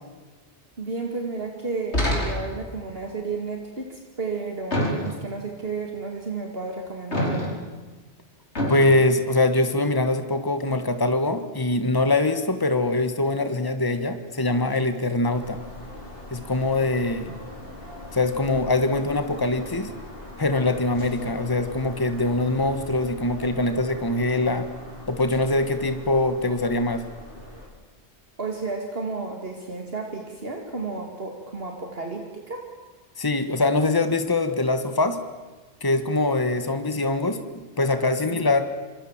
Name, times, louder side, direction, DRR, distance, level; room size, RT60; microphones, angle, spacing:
voice 1, 0.8-7.6 28.4-32.6 38.3-38.5, right 4 dB, 60° right, 2 dB, 2.6 m, -32 dB
sound 1, 1.9-2.7 4.7-5.4 7.1-7.8 8.6-8.9, equal, 80° left, 5.0 m, -26 dB
voice 2, 8.7-15.6 16.3-17.3 18.1-19.9 20.4-24.7 25.1-27.0 33.2-35.2 35.8-38.6, left 2 dB, 20° left, 9 dB, 1.7 m, -23 dB
sound 2, 15.3-27.7, left 1 dB, 55° left, 5.6 m, -41 dB
26.5 x 26.0 x 7.4 m, 1.3 s
omnidirectional pair, 1.1 m